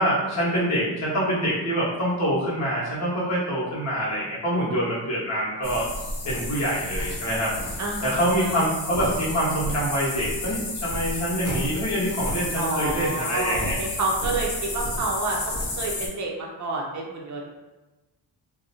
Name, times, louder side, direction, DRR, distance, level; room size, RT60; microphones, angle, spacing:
voice 1, 0.0-5.9 6.3-7.5 8.0-13.7, equal, 40° left, -6 dB, 0.9 m, -25 dB
sound 1, 5.6-16.1, left 1 dB, 70° left, 0.9 m, -31 dB
voice 2, 7.8-8.6 12.6-17.5, right 2 dB, 45° right, -1 dB, 0.5 m, -29 dB
2.5 x 2.1 x 2.7 m, 1.1 s
wide cardioid pair, 155°, 43 cm